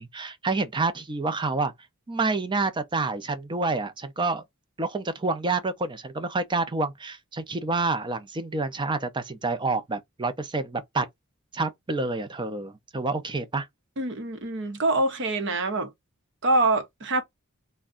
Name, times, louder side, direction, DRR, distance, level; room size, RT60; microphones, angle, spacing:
voice 1, 0.0-1.7 2.1-4.4 4.8-11.1 11.5-13.7, right 3 dB, 20° right, 0.5 m, -28 dB
voice 2, 14.0-15.9 16.4-17.2, right 2 dB, 60° right, 0.8 m, -25 dB
2.5 x 2.2 x 3.6 m
head